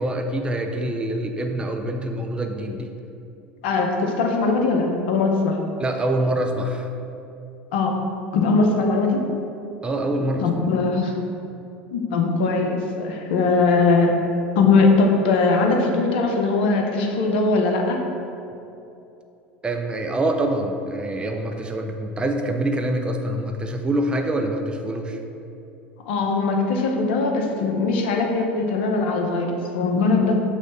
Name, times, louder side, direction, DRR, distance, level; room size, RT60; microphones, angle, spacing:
voice 1, 0.0-2.9 5.8-6.9 9.8-10.4 19.6-25.2, right 1 dB, 15° right, 4 dB, 0.6 m, -25 dB
voice 2, 3.6-5.6 7.7-8.0 8.3-9.2 10.4-11.1 11.9-14.1 14.5-18.0 26.1-30.3, left 3 dB, 65° left, 2 dB, 0.9 m, -20 dB
6.4 x 3.2 x 5.4 m, 2.7 s
hypercardioid pair, 75°, 6 cm